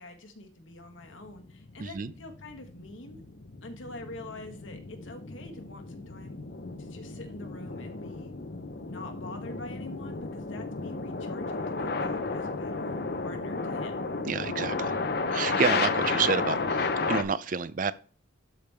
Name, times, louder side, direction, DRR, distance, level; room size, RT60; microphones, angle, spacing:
voice 1, 0.0-3.2 3.6-6.4 6.8-8.3 8.9-13.0 13.2-14.1, left 2 dB, 85° left, 1.5 m, -45 dB
sound 1, 1.1-17.2, left 3 dB, 55° left, 0.7 m, -33 dB
voice 2, 1.8-2.1 14.2-14.9 15.3-17.9, right 5 dB, 45° right, 0.4 m, -29 dB
12.0 x 5.0 x 3.4 m
head